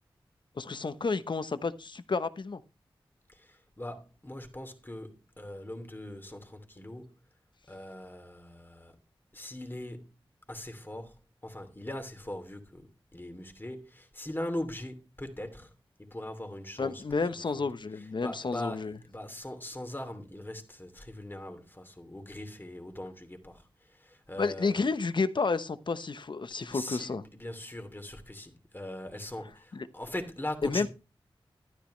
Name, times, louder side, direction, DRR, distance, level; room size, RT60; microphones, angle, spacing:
voice 1, 0.5-2.6 16.8-19.0 24.4-27.2 29.7-29.9 30.6-30.9, left 4 dB, 55° left, 1.0 m, -31 dB
voice 2, 3.3-7.1 7.7-8.9 9.3-10.1 10.5-11.2 11.4-12.8 13.1-15.7 16.0-17.0 17.5-17.7 18.2-23.6 23.9-24.9 26.5-30.9, left 1 dB, 20° left, 2.8 m, -41 dB
12.5 x 10.5 x 3.2 m
cardioid pair, 45°, 9 cm